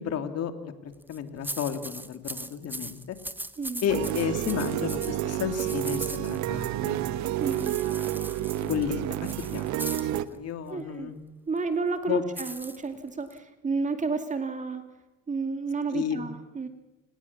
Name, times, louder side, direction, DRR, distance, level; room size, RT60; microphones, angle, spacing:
voice 1, 0.0-3.2 3.8-7.0 8.6-11.1 12.1-12.2 15.9-16.3, left 8 dB, 50° left, 8 dB, 2.7 m, -32 dB
sound 1, 0.9-1.2 1.4-6.7 7.4-10.1 12.3-13.4, right 1 dB, 5° right, 1.4 m, -39 dB
sound 2, 3.9-10.2, right 13 dB, 60° right, 1.3 m, -30 dB
voice 2, 7.4-7.8 10.7-11.1 11.5-14.9 15.3-16.7, right 4 dB, 25° right, 7 dB, 2.4 m, -31 dB
29.5 x 19.5 x 7.3 m, 1.0 s
supercardioid pair, 100°, 32 cm